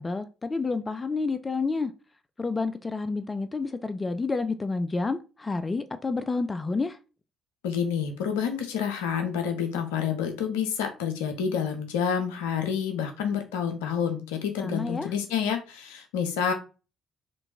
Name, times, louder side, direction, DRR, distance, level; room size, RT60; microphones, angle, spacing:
voice 1, 0.0-1.9 2.4-7.0 14.6-15.1, left 3 dB, 25° left, 0.3 m, -29 dB
voice 2, 7.6-16.5, left 7 dB, 70° left, 0.6 m, -28 dB
4.4 x 2.5 x 2.7 m
figure-of-eight pair, 45°, 0 cm